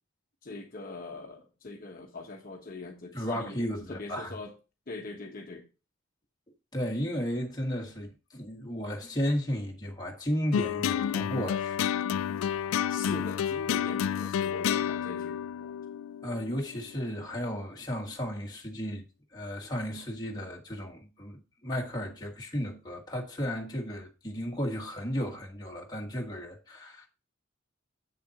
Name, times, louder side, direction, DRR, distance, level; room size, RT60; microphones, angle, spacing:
voice 1, 0.4-3.6 3.9-4.5 4.9-5.6 12.9-15.7, left 3 dB, 45° left, 1.1 m, -42 dB
voice 2, 3.1-4.3 6.7-11.9 16.2-19.0 19.3-27.1, equal, 20° left, 1.5 m, -34 dB
sound 1, 10.5-17.0, left 9 dB, 80° left, 0.3 m, -30 dB
7.7 x 6.9 x 2.9 m
head